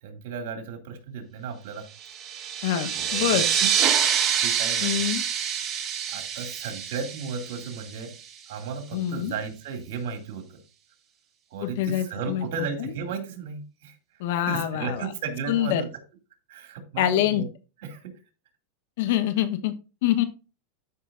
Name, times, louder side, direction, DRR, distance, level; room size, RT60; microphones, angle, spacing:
voice 1, 0.0-1.9 2.6-2.7 2.9-4.1 4.4-5.0 6.1-8.2 8.5-10.6 11.5-15.9 16.5-17.5 17.8-18.2, right 5 dB, 65° right, 2.5 m, -35 dB
sound 1, 2.0-8.2, right 8 dB, 30° right, 1.3 m, -26 dB
voice 2, 2.6-3.5 4.8-5.2 8.9-9.3 11.6-12.4 12.8-12.9 14.2-15.1 15.5-15.8 17.0-17.5 19.0-19.7 20.0-20.2, left 11 dB, 70° left, 1.1 m, -25 dB
12.5 x 5.5 x 2.6 m
supercardioid pair, 130°, 0 cm